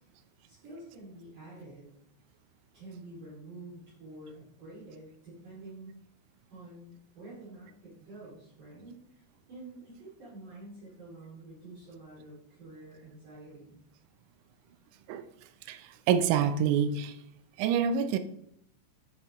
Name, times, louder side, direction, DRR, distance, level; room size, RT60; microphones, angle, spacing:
voice 1, 0.5-1.9 2.7-6.0 6.5-9.2 9.5-13.8, right 2 dB, 50° right, -9 dB, 3.5 m, -48 dB
voice 2, 15.7-17.2 17.6-18.2, right 8 dB, 85° right, 11 dB, 2.9 m, -27 dB
10.5 x 6.2 x 3.0 m, 0.75 s
omnidirectional pair, 5.6 m